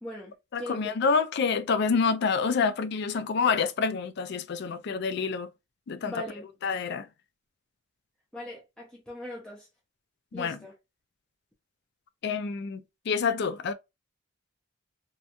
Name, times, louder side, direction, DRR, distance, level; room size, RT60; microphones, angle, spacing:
voice 1, 0.0-0.9 6.0-6.4 8.3-9.7 10.3-10.7, left 1 dB, 5° left, 0.5 m, -40 dB
voice 2, 0.5-5.5 5.9-6.1 6.6-7.1 10.3-10.6 12.2-12.8 13.1-13.7, left 5 dB, 55° left, 0.3 m, -27 dB
2.8 x 2.2 x 2.5 m
head